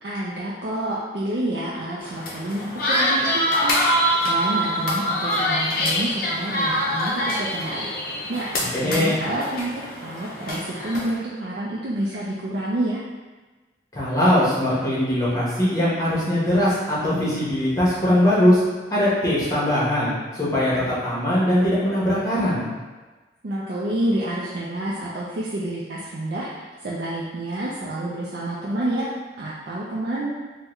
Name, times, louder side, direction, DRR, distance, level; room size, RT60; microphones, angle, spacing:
voice 1, 0.0-13.0 23.4-26.5 26.8-29.1 29.4-30.3, right 1 dB, 60° right, -6 dB, 0.4 m, -28 dB
sound 1, 2.0-11.1, equal, 50° left, 0.5 m, -24 dB
voice 2, 8.7-9.2 13.9-18.6 18.9-22.7, left 1 dB, 20° left, -7 dB, 0.9 m, -21 dB
3.6 x 2.1 x 3.0 m, 1.2 s
head